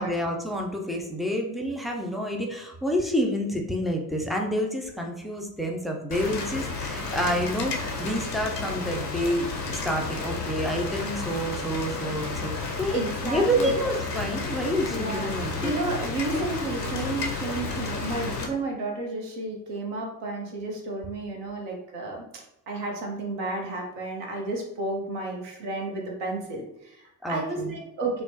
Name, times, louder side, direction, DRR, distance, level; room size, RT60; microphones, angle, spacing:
voice 1, 0.0-15.7 27.2-27.7, equal, ahead, 1 dB, 0.4 m, -28 dB
Rain, 6.1-18.4, left 3 dB, 85° left, 0.6 m, -32 dB
voice 2, 12.9-13.8 14.9-15.3 15.6-22.2 22.7-28.2, right 2 dB, 60° right, 0 dB, 1.0 m, -32 dB
4.4 x 2.0 x 2.7 m, 0.85 s
figure-of-eight pair, 50°, 47 cm